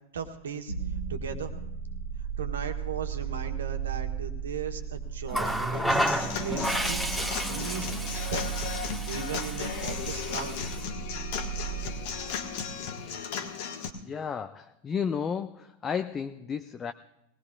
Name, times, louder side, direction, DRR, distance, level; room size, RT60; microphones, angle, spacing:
voice 1, 0.1-0.7 1.1-1.6 2.4-7.9 8.3-8.4 9.1-10.7, right 6 dB, 65° right, 5 dB, 1.4 m, -37 dB
sound 1, 0.7-12.8, right 8 dB, 75° left, 2.5 m, -36 dB
Water tap faucet, 5.3-10.8 12.1-12.3, equal, ahead, 1.5 m, -32 dB
Human voice / Acoustic guitar / Drum, 5.9-13.9, left 7 dB, 50° left, 1.4 m, -36 dB
voice 2, 14.0-16.9, left 7 dB, 20° left, 9 dB, 0.5 m, -32 dB
20.0 x 18.5 x 2.4 m, 0.86 s
figure-of-eight pair, 90°, 0 cm